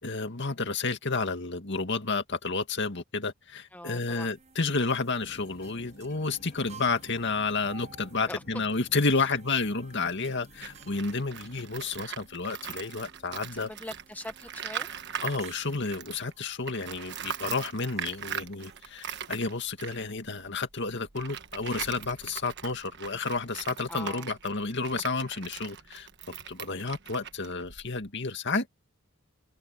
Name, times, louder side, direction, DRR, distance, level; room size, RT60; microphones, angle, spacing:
voice 1, 0.0-13.7 15.2-26.1 26.5-28.7, left 3 dB, 55° left, 2.2 m, -31 dB
voice 2, 3.7-4.3 6.6-6.8 8.3-8.4 13.5-14.9 23.9-24.3 26.6-26.9, left 1 dB, 10° left, 1.0 m, -42 dB
sound 1, 3.9-19.4, right 5 dB, 35° right, 7.4 m, -56 dB
sound 2, 5.2-11.8, left 1 dB, 40° left, 2.0 m, -53 dB
Tools, 10.5-16.3 16.6-28.1, right 8 dB, 55° right, 1.3 m, -40 dB
head